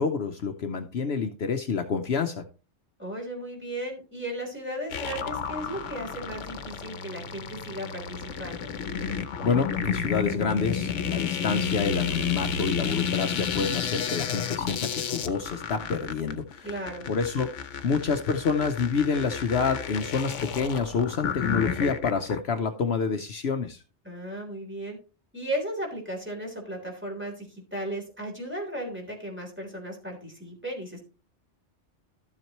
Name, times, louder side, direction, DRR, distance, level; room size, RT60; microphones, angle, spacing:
voice 1, 0.0-2.5 9.4-16.7 17.1-17.5 17.8-23.8, left 5 dB, 65° left, 7 dB, 1.0 m, -28 dB
voice 2, 3.0-8.7 16.6-17.0 24.0-25.0 25.3-31.0, right 1 dB, 10° right, -1 dB, 3.5 m, -35 dB
sound 1, 4.9-22.4, left 6 dB, 80° left, 1.1 m, -32 dB
13.0 x 7.5 x 3.0 m, 0.35 s
omnidirectional pair, 1.2 m